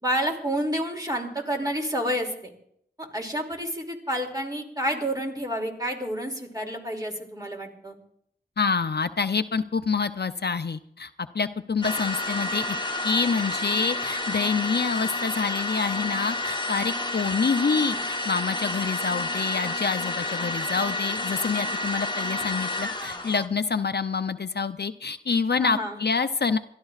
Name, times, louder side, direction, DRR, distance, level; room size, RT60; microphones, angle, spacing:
voice 1, 0.0-2.5 3.0-8.0 25.6-26.0, equal, 20° right, 0 dB, 2.6 m, -29 dB
voice 2, 8.6-12.8 13.0-26.6, left 5 dB, 65° left, 11 dB, 0.5 m, -27 dB
sound 1, 11.8-23.5, left 2 dB, 25° left, 1.0 m, -30 dB
28.0 x 13.0 x 2.4 m, 0.71 s
wide cardioid pair, 50°, 18 cm